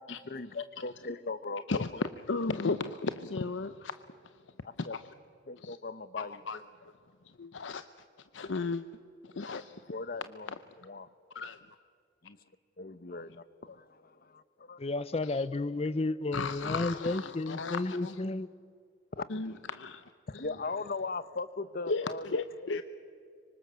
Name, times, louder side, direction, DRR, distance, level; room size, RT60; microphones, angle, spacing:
voice 1, 0.3-1.8 4.8-5.0 5.5-6.4 9.5-9.6 9.9-10.5 10.8-11.1 12.2-12.4 12.8-14.8 19.1-19.3 20.3-22.2, left 3 dB, 50° left, 15 dB, 0.9 m, -39 dB
voice 2, 2.2-4.4 4.8-5.0 5.6-5.8 6.2-6.9 7.2-7.8 8.3-8.8 9.2-9.7 11.3-11.6 15.2-15.4 16.3-18.2 19.3-20.0 20.3-20.5 21.9-22.8, left 3 dB, 80° left, 11 dB, 0.7 m, -35 dB
voice 3, 14.8-18.5, left 2 dB, 30° left, 16 dB, 0.5 m, -32 dB
25.0 x 24.5 x 6.9 m, 2.3 s
head